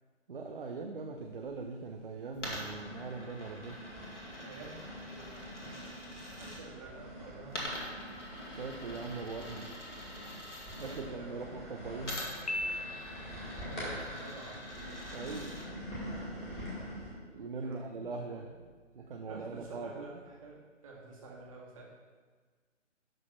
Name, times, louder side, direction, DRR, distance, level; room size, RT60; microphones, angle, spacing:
voice 1, 0.3-3.8 8.6-9.7 10.2-10.3 10.8-12.2 15.1-15.5 17.1-18.5 19.0-19.9, right 4 dB, 45° right, 3 dB, 0.7 m, -41 dB
sound 1, 1.3-2.0 2.5-17.1, equal, 15° left, 2.3 m, -45 dB
Coin (dropping), 2.3-6.6 7.5-11.0 12.0-15.7, left 1 dB, 70° left, 2.5 m, -45 dB
voice 2, 4.4-6.1 6.4-7.6 10.9-12.6 13.6-14.6 17.2-18.7 18.9-20.6 20.8-21.8, right 3 dB, 30° right, -2 dB, 1.7 m, -50 dB
Piano, 12.5-13.6, left 1 dB, 30° left, 0.5 m, -37 dB
11.5 x 4.1 x 5.8 m, 1.5 s
figure-of-eight pair, 140°, 37 cm